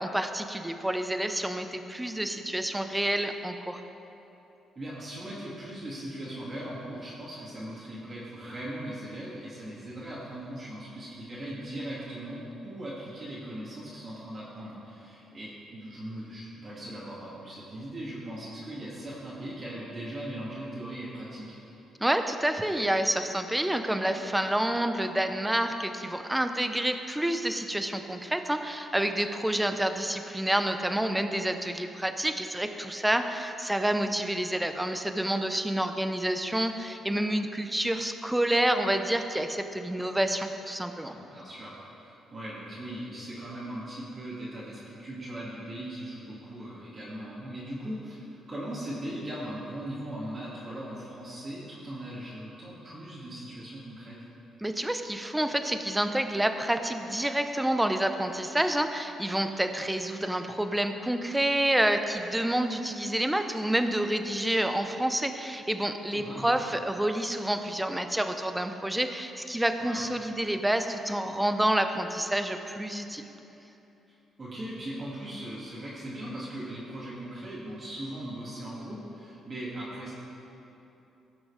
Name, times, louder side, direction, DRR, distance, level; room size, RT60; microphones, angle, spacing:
voice 1, 0.0-3.8 22.0-41.1 54.6-73.3, right 1 dB, 5° right, 7 dB, 0.7 m, -28 dB
voice 2, 4.8-21.6 41.0-54.2 66.1-66.5 69.8-70.0 74.4-80.1, right 1 dB, 35° right, -8 dB, 2.6 m, -39 dB
16.5 x 6.1 x 5.1 m, 3.0 s
cardioid pair, 90°, 0 cm